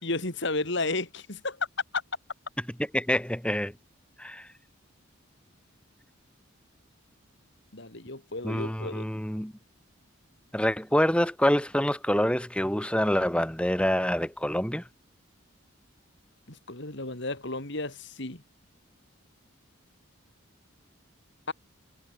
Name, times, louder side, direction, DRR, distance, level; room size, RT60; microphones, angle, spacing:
voice 1, 0.0-1.6 7.7-9.1 16.5-18.4 21.5-21.6, left 2 dB, 60° left, 3.2 m, -33 dB
voice 2, 2.9-3.7 4.2-4.5 8.4-9.5 10.5-14.8, equal, 5° left, 2.6 m, -26 dB
head